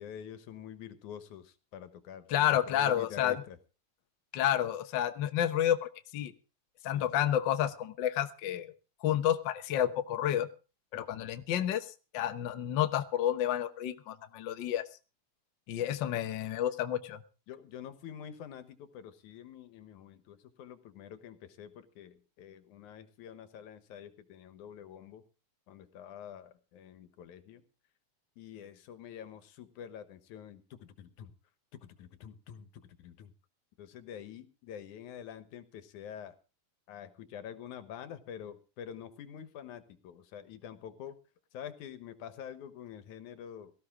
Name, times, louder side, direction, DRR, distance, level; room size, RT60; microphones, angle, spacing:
voice 1, 0.0-3.6 6.8-7.3 10.9-11.3 17.5-25.2 25.7-27.6 28.4-31.3 31.7-33.3 33.8-36.3 36.9-41.2 41.5-43.7, left 9 dB, 90° left, 11 dB, 2.6 m, -47 dB
voice 2, 2.3-3.4 4.3-6.3 6.8-8.7 9.0-10.5 10.9-11.9 12.1-14.8 15.7-17.2, left 11 dB, 60° left, 8 dB, 1.2 m, -30 dB
17.5 x 14.5 x 3.7 m, 0.33 s
omnidirectional pair, 3.4 m